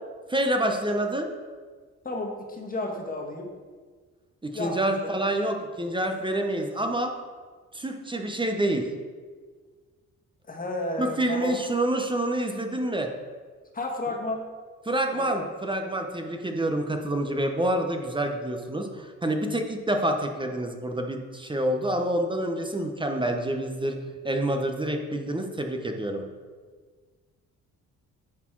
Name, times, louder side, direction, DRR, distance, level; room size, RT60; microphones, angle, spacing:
voice 1, 0.3-1.3 4.4-7.1 7.7-8.9 11.0-13.1 14.8-24.0 24.2-26.2, right 1 dB, 15° right, 4 dB, 0.8 m, -27 dB
voice 2, 2.0-3.5 4.5-4.9 10.5-11.5 13.7-14.4 15.1-15.5, left 2 dB, 25° left, 1 dB, 1.5 m, -32 dB
9.8 x 4.2 x 4.6 m, 1.5 s
cardioid pair, 90°, 32 cm